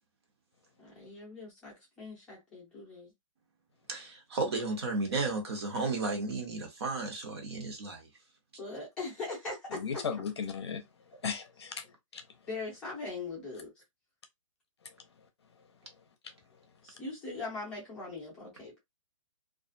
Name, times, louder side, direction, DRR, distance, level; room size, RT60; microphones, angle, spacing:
voice 1, 0.8-3.1 8.6-10.0 11.6-11.7 12.4-13.7 16.8-18.8, left 3 dB, 5° left, 0.6 m, -41 dB
voice 2, 3.9-8.1, right 3 dB, 50° right, 0.9 m, -33 dB
voice 3, 9.7-10.8 11.2-11.7 12.1-12.2, left 6 dB, 50° left, 0.6 m, -35 dB
2.4 x 2.3 x 2.5 m
hypercardioid pair, 180°, 17 cm